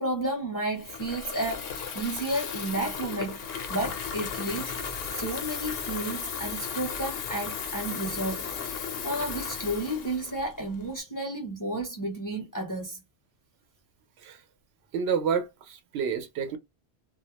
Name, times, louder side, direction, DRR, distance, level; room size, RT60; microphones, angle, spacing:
voice 1, 0.0-4.9 5.1-13.0, right 1 dB, 25° left, 0.6 m, -32 dB
Water tap faucet / Fill (with liquid), 0.7-11.0, left 6 dB, 70° left, 0.8 m, -35 dB
voice 2, 14.9-16.6, right 6 dB, 75° right, 0.8 m, -29 dB
2.3 x 2.0 x 2.8 m
omnidirectional pair, 1.1 m